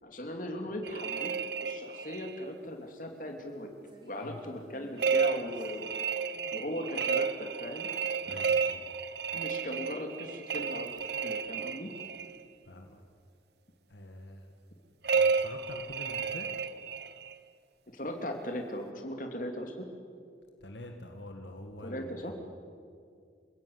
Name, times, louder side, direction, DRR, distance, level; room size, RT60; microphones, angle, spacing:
voice 1, 0.0-1.3 1.6-3.7 4.1-5.9 6.5-7.9 9.3-10.9 11.2-11.9 17.9-19.9 21.8-22.3, equal, 45° left, 3 dB, 3.2 m, -38 dB
sound 1, 0.8-2.4 5.0-12.4 15.0-17.3, right 5 dB, 65° right, 1.0 m, -32 dB
sound 2, 3.8-6.6 7.6-7.7 10.5-11.2 11.5-12.3, right 1 dB, 25° right, 4.5 m, -58 dB
voice 2, 8.3-8.8 12.6-13.0 13.9-14.5 15.1-16.5 20.6-22.3, left 1 dB, 75° left, 4 dB, 2.0 m, -46 dB
27.5 x 16.5 x 9.8 m, 2.3 s
head